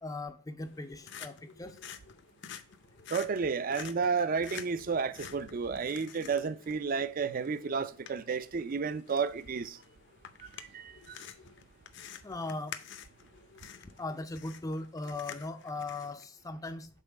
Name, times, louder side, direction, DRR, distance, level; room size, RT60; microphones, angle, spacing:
voice 1, 0.0-1.8 12.2-12.8 14.0-16.9, left 2 dB, 15° left, 0.4 m, -39 dB
sound 1, 0.6-16.2, left 8 dB, 60° left, 0.6 m, -49 dB
voice 2, 3.1-9.8 10.7-10.9, right 5 dB, 45° right, 0.4 m, -31 dB
5.5 x 4.0 x 6.1 m
head